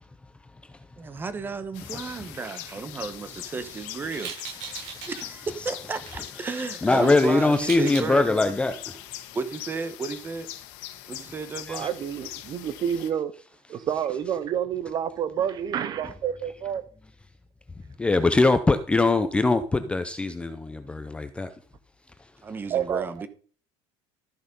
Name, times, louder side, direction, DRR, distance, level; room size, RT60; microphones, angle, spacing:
voice 1, 1.0-4.3 5.1-8.3 9.3-10.5 11.1-11.9 22.4-23.3, right 4 dB, 15° right, 1.1 m, -33 dB
sound 1, 1.7-13.1, left 14 dB, 85° left, 1.5 m, -41 dB
sound 2, 4.1-5.3 5.9-6.2 7.3-8.1, right 7 dB, 85° right, 6.8 m, -38 dB
voice 2, 6.8-8.8 11.8-11.9 18.0-21.5, left 3 dB, 10° left, 0.5 m, -22 dB
voice 3, 11.7-13.3 13.7-16.8 22.7-23.1, right 9 dB, 35° right, 0.8 m, -28 dB
13.5 x 6.2 x 5.3 m
cardioid pair, 175°, 12 cm